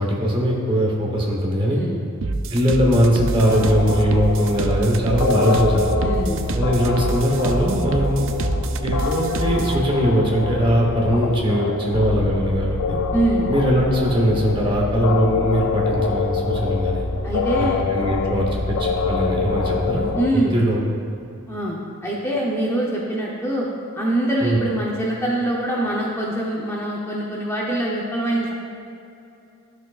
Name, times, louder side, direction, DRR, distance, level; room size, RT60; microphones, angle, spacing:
voice 1, 0.0-1.8 2.5-5.9 6.5-8.2 8.8-13.0 13.5-17.1 17.9-20.8 24.4-24.6, equal, 25° right, -1 dB, 1.0 m, -20 dB
voice 2, 1.7-2.0 6.0-6.5 13.1-13.5 17.2-17.8 20.1-20.6 21.5-23.7 24.0-28.5, right 1 dB, 10° left, -4 dB, 0.7 m, -24 dB
sound 1, 2.2-9.8, right 3 dB, 60° right, 0.4 m, -27 dB
sound 2, 3.4-20.3, left 4 dB, 85° left, 0.5 m, -25 dB
12.0 x 6.3 x 2.4 m, 2.6 s
head